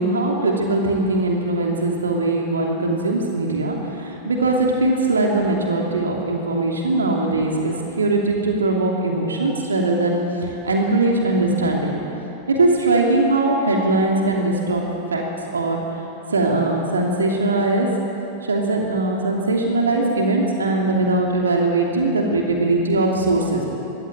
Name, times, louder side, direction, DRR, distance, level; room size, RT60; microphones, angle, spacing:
voice 1, 0.0-12.0 12.5-14.8 15.1-15.2 15.5-15.8 16.3-17.9 18.4-23.6, right 2 dB, 75° right, 0 dB, 2.8 m, -20 dB
24.0 x 16.5 x 7.6 m, 3.0 s
figure-of-eight pair, 90°, 0 cm